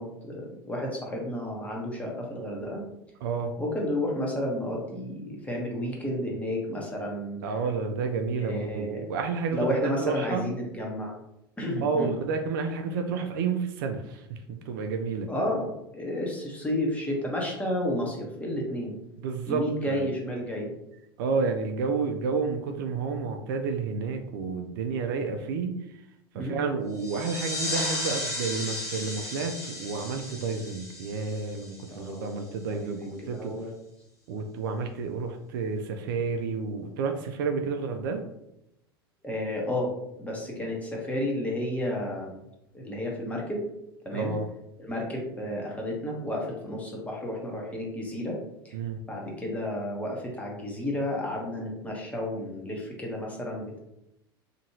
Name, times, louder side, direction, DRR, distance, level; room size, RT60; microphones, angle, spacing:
voice 1, 0.0-2.8 3.6-7.4 8.4-9.0 9.5-11.2 11.6-12.1 15.3-19.0 19.4-20.7 26.3-26.6 31.9-33.7 39.2-39.9 40.2-42.4 42.7-43.6 44.0-44.3 44.8-48.4 48.6-48.7 49.1-53.8, left 1 dB, 10° left, -2 dB, 0.9 m, -32 dB
voice 2, 3.2-3.5 7.4-10.5 11.8-15.3 19.2-20.1 21.2-25.8 26.3-33.5 34.3-38.2 44.1-44.5 48.7-49.0, right 4 dB, 60° right, 5 dB, 0.4 m, -30 dB
sound 1, 26.9-32.3, left 1 dB, 25° left, 1.2 m, -34 dB
2.9 x 2.6 x 2.8 m, 0.83 s
figure-of-eight pair, 80°, 12 cm